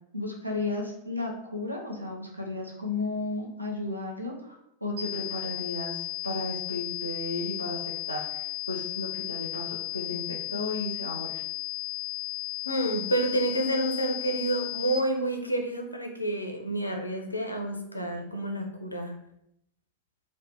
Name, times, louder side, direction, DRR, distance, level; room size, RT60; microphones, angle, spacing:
voice 1, 0.1-11.4, left 2 dB, 85° right, 0 dB, 0.5 m, -34 dB
sound 1, 5.0-15.0, left 18 dB, 50° right, 0.8 m, -35 dB
voice 2, 12.6-19.1, right 1 dB, 85° left, 4 dB, 0.4 m, -29 dB
3.1 x 2.0 x 2.7 m, 0.78 s
figure-of-eight pair, 90°, 0 cm